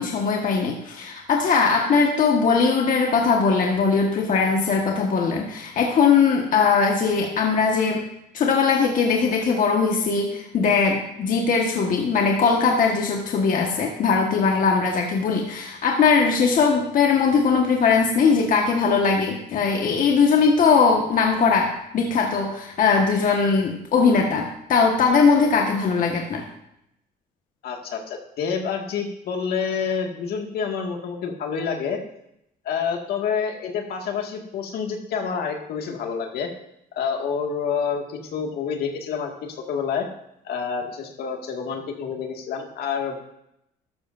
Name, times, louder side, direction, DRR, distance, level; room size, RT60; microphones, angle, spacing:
voice 1, 0.0-8.1 8.3-26.5, left 5 dB, 50° left, 0 dB, 1.6 m, -20 dB
voice 2, 27.6-32.0 32.6-36.5 36.9-40.1 40.4-43.2, left 6 dB, 70° left, 2 dB, 2.0 m, -28 dB
13.0 x 13.0 x 2.7 m, 0.80 s
cardioid pair, 110°, 17 cm